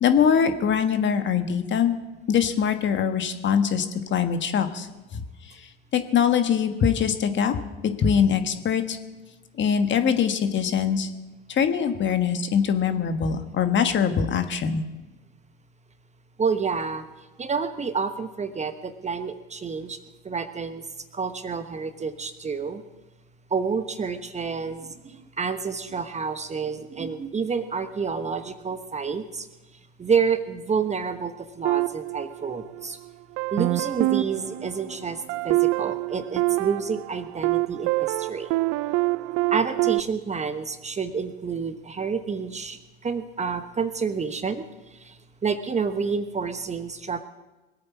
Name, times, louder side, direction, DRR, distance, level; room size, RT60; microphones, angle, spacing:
voice 1, 0.0-2.0 2.3-4.9 5.1-5.2 5.9-7.6 8.0-9.0 9.6-11.1 11.5-14.8, left 7 dB, 35° left, 8 dB, 1.5 m, -22 dB
voice 2, 16.4-17.0 17.4-20.0 20.2-20.8 21.1-22.8 23.5-29.5 30.0-33.0 33.5-38.5 39.5-44.6 45.0-45.1 45.4-47.2, right 5 dB, 20° right, 10 dB, 1.0 m, -29 dB
sound 1, 31.6-32.9 33.4-40.0, right 21 dB, 50° right, 0.6 m, -26 dB
21.0 x 8.8 x 7.2 m, 1.1 s
hypercardioid pair, 80°, 32 cm